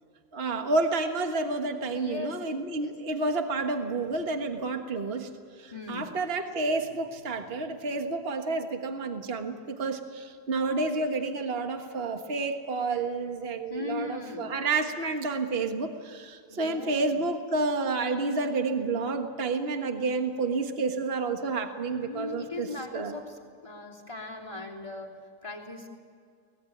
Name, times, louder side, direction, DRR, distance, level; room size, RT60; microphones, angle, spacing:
voice 1, 0.3-5.3 5.6-22.7 22.9-23.1, right 3 dB, 40° right, 5 dB, 1.6 m, -30 dB
voice 2, 1.9-2.4 2.8-2.9 5.7-6.2 13.7-14.5 16.5-17.2 21.9-25.1 25.4-25.9, left 3 dB, 20° left, -2 dB, 3.3 m, -39 dB
24.0 x 20.0 x 8.6 m, 2.2 s
omnidirectional pair, 1.6 m